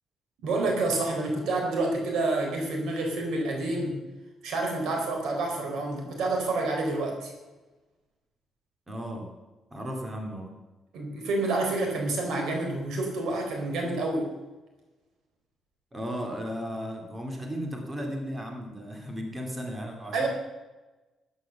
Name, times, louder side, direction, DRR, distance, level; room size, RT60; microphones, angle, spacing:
voice 1, 0.4-4.0 4.4-7.3 10.9-14.3 20.1-20.3, right 2 dB, 85° right, 2 dB, 4.1 m, -28 dB
voice 2, 8.9-9.3 9.7-10.5 15.9-20.3, equal, 20° right, 2 dB, 2.4 m, -35 dB
13.0 x 9.6 x 6.9 m, 1.1 s
cardioid pair, 130°, 0 cm